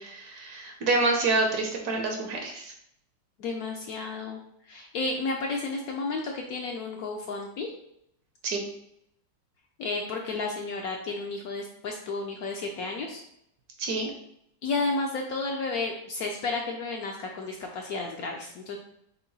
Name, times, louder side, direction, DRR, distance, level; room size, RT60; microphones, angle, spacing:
voice 1, 0.0-2.7 8.4-8.6 13.8-14.1, right 3 dB, 65° right, 2 dB, 1.1 m, -27 dB
voice 2, 3.4-4.4 4.7-7.7 9.8-13.2 14.6-18.8, left 3 dB, 70° left, 1 dB, 0.9 m, -32 dB
5.6 x 2.2 x 3.9 m, 0.74 s
omnidirectional pair, 2.0 m